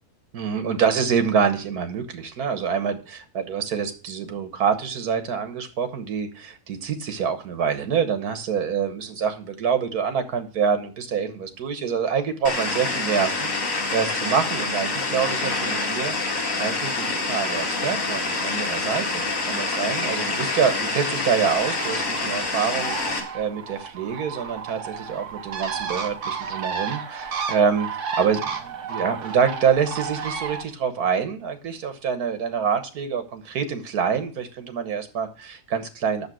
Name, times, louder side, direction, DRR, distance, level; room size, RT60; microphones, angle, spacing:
voice 1, 0.3-13.7 13.9-16.2 16.6-36.3, right 6 dB, 85° right, 9 dB, 1.7 m, -26 dB
sound 1, 12.4-23.2, left 3 dB, 60° left, 2.3 m, -26 dB
Bird, 21.4-30.6, right 6 dB, 55° right, 1.3 m, -32 dB
8.1 x 6.9 x 6.3 m, 0.37 s
omnidirectional pair, 1.6 m